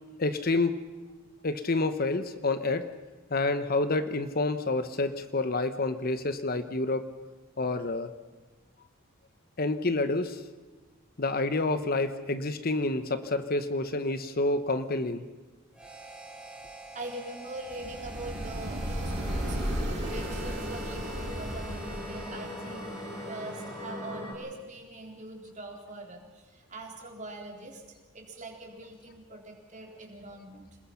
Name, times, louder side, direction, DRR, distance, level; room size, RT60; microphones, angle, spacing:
voice 1, 0.2-0.8 1.4-2.8 3.3-7.0 7.6-8.1 9.6-10.4 11.2-15.3, left 2 dB, 45° left, 10 dB, 1.0 m, -28 dB
Harmonica, 15.7-24.4, right 2 dB, 5° right, 3.5 m, -47 dB
voice 2, 16.9-27.8 28.1-30.8, right 2 dB, 35° right, 2 dB, 3.8 m, -43 dB
sound 1, 17.7-22.4, equal, 50° right, 6.3 m, -34 dB
sound 2, 19.0-24.3, left 1 dB, 20° left, 5.0 m, -40 dB
27.0 x 20.5 x 5.8 m, 1.3 s
head